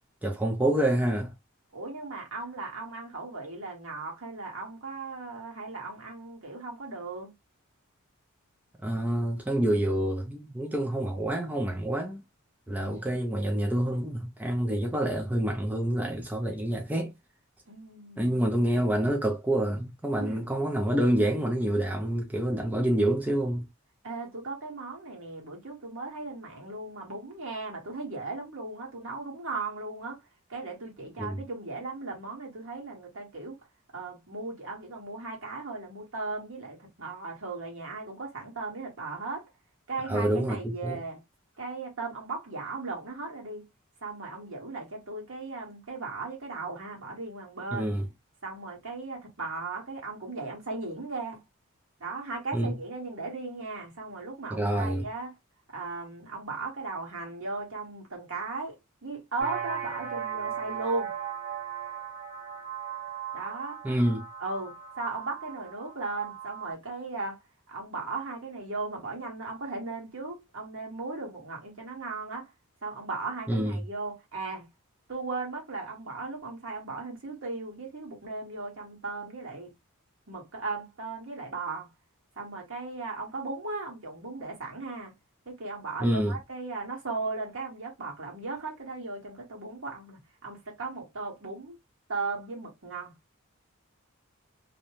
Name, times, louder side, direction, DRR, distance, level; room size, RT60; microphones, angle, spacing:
voice 1, 0.2-1.3 8.8-12.2 12.7-17.1 18.2-23.7 31.2-31.4 40.1-41.0 47.7-48.1 52.5-52.7 54.5-55.1 63.8-64.3 73.5-73.8 86.0-86.4, right 1 dB, 5° right, 0.4 m, -27 dB
voice 2, 1.7-7.3 12.7-13.2 17.7-18.4 20.2-20.4 24.0-30.2 30.5-33.6 33.9-39.5 39.9-41.2 41.6-43.6 44.0-47.9 48.4-51.4 52.0-55.3 55.7-58.7 59.0-61.1 63.3-63.8 64.4-67.4 67.7-72.5 72.8-74.7 75.1-79.7 80.3-81.9 82.4-85.1 85.5-91.7 92.1-93.1, right 3 dB, 65° right, 1.2 m, -37 dB
sound 1, 59.4-66.7, right 8 dB, 45° right, 0.8 m, -37 dB
2.5 x 2.1 x 2.8 m
head